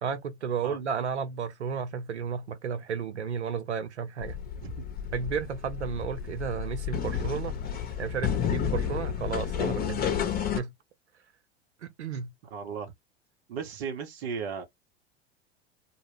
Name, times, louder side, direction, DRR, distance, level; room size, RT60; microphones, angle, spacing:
voice 1, 0.0-4.4 5.1-7.5 8.0-10.2 10.6-10.7 11.8-12.3, right 6 dB, 90° right, 0.7 m, -33 dB
sound 1, 4.2-10.6, left 8 dB, 25° left, 0.8 m, -31 dB
voice 2, 12.5-12.9 13.5-14.6, right 6 dB, 65° right, 1.1 m, -35 dB
2.4 x 2.1 x 3.3 m
hypercardioid pair, 85°, 33 cm